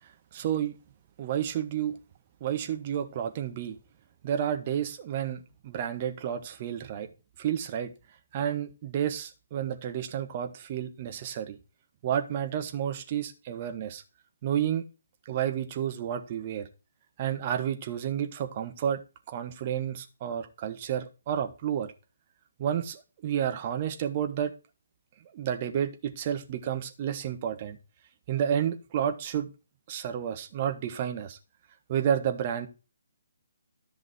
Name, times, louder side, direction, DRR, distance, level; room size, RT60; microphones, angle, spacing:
voice 1, 0.3-0.7 1.2-2.0 2.4-3.8 4.2-7.1 7.4-7.9 8.3-11.6 12.0-14.0 14.4-14.8 15.2-16.7 17.2-19.0 19.3-21.9 22.6-24.5 25.3-27.8 28.3-29.5 29.9-31.4 31.9-32.7, right 9 dB, 30° right, 7 dB, 1.5 m, -30 dB
14.0 x 5.8 x 4.4 m, 0.31 s
figure-of-eight pair, 135°, 0 cm